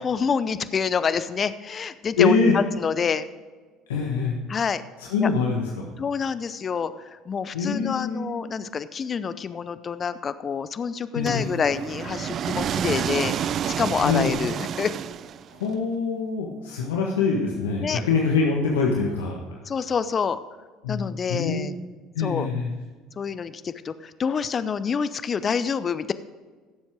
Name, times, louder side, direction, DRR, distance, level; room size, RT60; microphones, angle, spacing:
voice 1, 0.0-3.3 4.5-4.8 5.2-5.3 6.0-13.3 13.7-14.9 17.8-18.0 19.7-20.4 20.9-21.7 22.2-22.5 23.2-26.1, left 6 dB, 40° left, 13 dB, 0.7 m, -27 dB
voice 2, 2.2-2.5 3.9-4.4 5.0-5.6 7.5-8.3 11.1-11.4 14.0-14.3 15.6-19.3 20.8-21.0 21.3-21.7 22.1-22.7, left 4 dB, 85° left, -1 dB, 1.4 m, -24 dB
sound 1, 11.3-15.7, right 9 dB, 50° right, 0.4 m, -29 dB
16.0 x 7.3 x 5.0 m, 1.4 s
hypercardioid pair, 65°, 0 cm